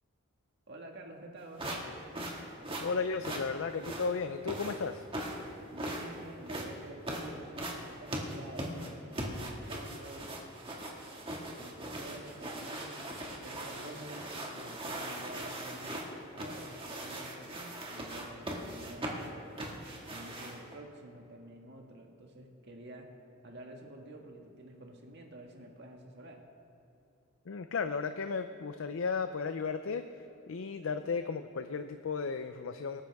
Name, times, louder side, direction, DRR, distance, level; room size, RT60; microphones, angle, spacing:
voice 1, 0.7-2.0 5.7-10.3 11.6-16.0 16.3-19.6 20.1-23.1 23.4-26.4, right 1 dB, 55° right, 1 dB, 1.7 m, -49 dB
sound 1, 1.6-20.7, right 1 dB, 25° right, 2.0 m, -40 dB
voice 2, 2.8-5.0 27.5-33.0, left 5 dB, 70° left, 9 dB, 0.5 m, -35 dB
25.5 x 10.0 x 3.5 m, 2.8 s
head